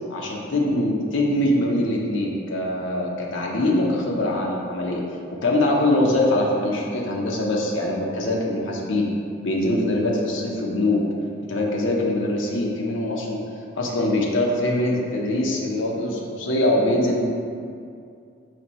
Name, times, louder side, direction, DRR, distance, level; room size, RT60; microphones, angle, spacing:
voice 1, 0.1-5.0 5.3-9.1 9.4-11.0 11.5-13.4 13.7-17.2, left 1 dB, 65° left, -2 dB, 0.7 m, -23 dB
4.3 x 2.6 x 4.2 m, 2.4 s
head